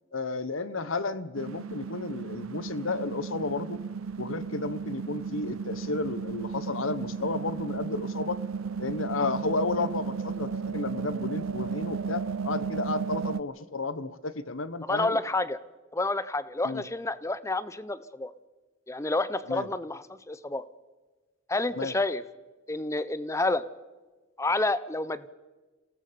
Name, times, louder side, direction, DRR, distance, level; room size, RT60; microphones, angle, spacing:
voice 1, 0.1-3.8 4.2-8.4 8.8-15.2 16.6-16.8 19.5-19.7 21.7-21.9, left 3 dB, 75° left, 15 dB, 1.1 m, -32 dB
sound 1, 1.4-13.4, right 5 dB, 85° right, 0.6 m, -34 dB
voice 2, 14.9-15.6 15.9-18.3 18.9-20.6 21.5-22.2 22.7-23.6 24.4-25.3, left 2 dB, 15° left, 15 dB, 0.6 m, -29 dB
27.5 x 18.0 x 5.2 m, 1.2 s
head